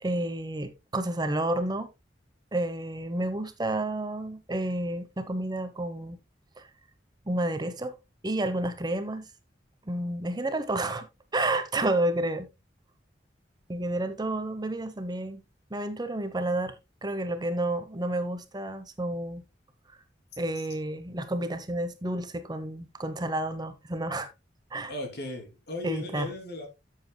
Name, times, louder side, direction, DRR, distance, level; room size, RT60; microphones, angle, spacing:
voice 1, 0.0-1.9 2.5-6.2 6.6-6.7 7.3-7.9 8.2-9.3 9.9-11.1 11.3-12.5 13.7-15.4 15.7-16.8 17.0-19.4 19.9-20.0 20.4-24.3 24.7-24.9 25.8-26.3, right 1 dB, 25° right, 0.9 m, -30 dB
voice 2, 24.8-26.7, left 2 dB, 60° left, 3.0 m, -36 dB
14.0 x 7.5 x 2.2 m
head